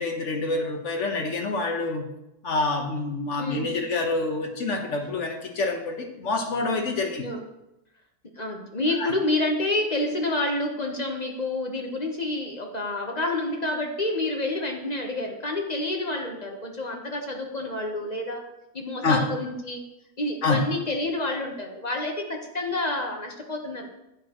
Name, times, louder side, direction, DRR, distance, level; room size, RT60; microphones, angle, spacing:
voice 1, 0.0-2.0 2.4-7.2 9.0-9.1 19.0-19.2 20.4-20.7, left 3 dB, 50° left, 4 dB, 1.4 m, -27 dB
voice 2, 8.4-18.4 18.7-19.8 20.2-23.9, left 2 dB, 30° left, 2 dB, 1.0 m, -28 dB
11.5 x 8.6 x 3.0 m, 0.91 s
omnidirectional pair, 1.7 m